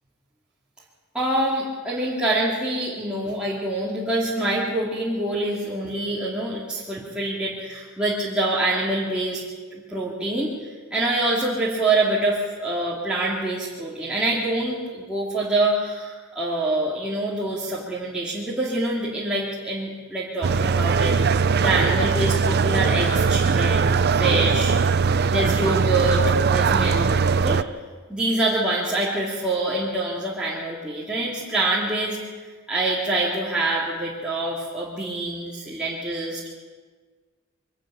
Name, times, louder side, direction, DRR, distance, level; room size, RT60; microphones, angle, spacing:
voice 1, 1.1-9.4 9.9-10.5 10.9-24.8 25.3-27.0 27.3-27.6 28.1-32.2 32.7-36.5, right 2 dB, 5° right, -8 dB, 3.1 m, -25 dB
sound 1, 20.4-27.6, right 5 dB, 50° right, 0.6 m, -20 dB
23.5 x 14.0 x 8.9 m, 1.5 s
head